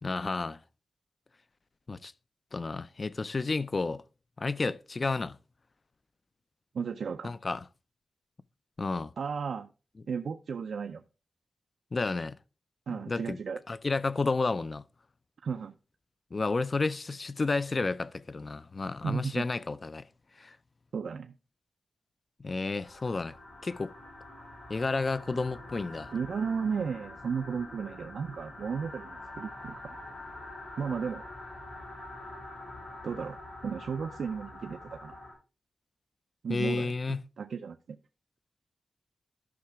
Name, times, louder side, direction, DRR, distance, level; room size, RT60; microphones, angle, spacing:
voice 1, 0.0-0.6 1.9-2.1 2.5-4.0 4.4-5.4 7.2-7.6 8.8-9.1 11.9-12.4 12.9-13.4 13.7-14.8 16.3-20.1 20.4-20.6 22.4-23.3 23.6-23.9 24.7-26.1 36.5-37.2, left 3 dB, 35° left, 0.3 m, -31 dB
voice 2, 6.7-7.3 9.2-9.7 10.1-11.0 12.9-13.6 15.4-15.7 19.0-19.4 20.9-21.4 26.1-29.9 30.8-31.2 33.0-35.2 36.4-38.0, right 6 dB, 85° right, 0.4 m, -34 dB
sound 1, 22.8-35.3, left 2 dB, 75° left, 5.9 m, -45 dB
12.5 x 5.7 x 3.4 m
wide cardioid pair, 180°, 0 cm